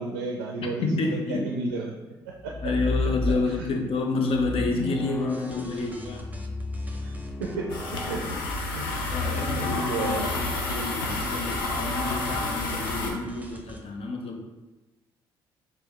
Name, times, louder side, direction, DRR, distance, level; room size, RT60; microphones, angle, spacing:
voice 1, 0.0-0.9 1.3-1.9 2.3-2.5 3.6-3.7 7.0-7.1 7.4-8.4 8.7-8.9 9.2-10.3 13.0-13.2, right 3 dB, 85° right, 0 dB, 0.4 m, -33 dB
voice 2, 0.6-1.5 2.6-6.3 9.1-14.4, left 3 dB, 55° left, 3 dB, 0.7 m, -29 dB
sound 1, 2.4-3.8 4.3-9.8 11.3-11.7, left 2 dB, 10° left, 0.3 m, -33 dB
sound 2, 5.3-7.6 7.8-13.8, right 1 dB, 15° right, 0.8 m, -45 dB
sound 3, 7.7-13.1, left 3 dB, 85° left, 0.5 m, -30 dB
4.5 x 2.7 x 3.2 m, 1.1 s
hypercardioid pair, 45°, 12 cm